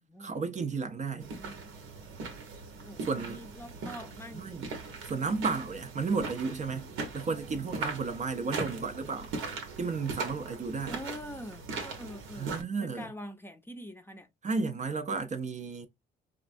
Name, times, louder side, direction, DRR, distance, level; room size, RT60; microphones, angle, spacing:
voice 1, 0.2-1.3 3.1-3.4 4.3-4.7 5.0-9.3 9.8-11.0 12.3-13.1 14.4-15.9, right 4 dB, 35° right, 0.5 m, -33 dB
voice 2, 1.2-1.6 2.8-4.6 8.5-8.8 10.9-14.3, equal, 10° left, 0.6 m, -45 dB
sound 1, 1.2-12.6, right 4 dB, 90° right, 1.0 m, -40 dB
4.3 x 2.3 x 2.5 m
cardioid pair, 90°, 20 cm